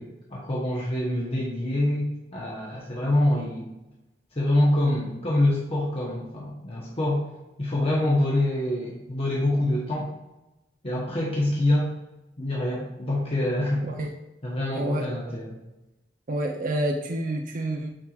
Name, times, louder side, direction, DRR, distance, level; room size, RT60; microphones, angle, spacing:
voice 1, 0.0-3.7 4.4-7.2 7.6-10.1 10.8-11.9 12.4-14.0 14.4-15.6, left 1 dB, 35° left, -4 dB, 1.0 m, -25 dB
voice 2, 14.7-15.4 16.3-17.9, right 1 dB, 50° right, 2 dB, 0.6 m, -29 dB
8.7 x 4.6 x 2.4 m, 0.98 s
head